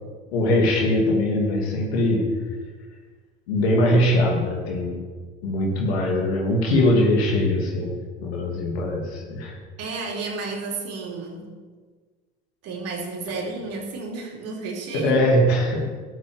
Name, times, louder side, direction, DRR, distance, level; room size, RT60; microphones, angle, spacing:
voice 1, 0.3-2.3 3.5-5.0 5.4-9.5 14.9-15.9, left 1 dB, 75° left, 0 dB, 2.7 m, -21 dB
voice 2, 9.8-11.5 12.6-15.2, right 3 dB, 50° right, -1 dB, 3.5 m, -31 dB
12.5 x 7.8 x 7.0 m, 1.5 s
hypercardioid pair, 75°, 32 cm